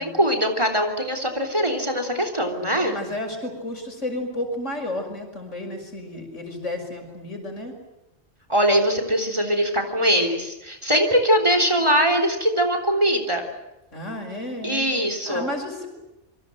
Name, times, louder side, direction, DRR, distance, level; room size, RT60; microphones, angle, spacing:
voice 1, 0.0-3.0 8.5-13.4 14.6-15.5, equal, 25° right, 5 dB, 3.5 m, -22 dB
voice 2, 2.6-7.7 13.9-14.9 15.2-15.9, left 1 dB, 80° left, 4 dB, 6.3 m, -32 dB
27.5 x 24.5 x 7.8 m, 0.94 s
omnidirectional pair, 1.2 m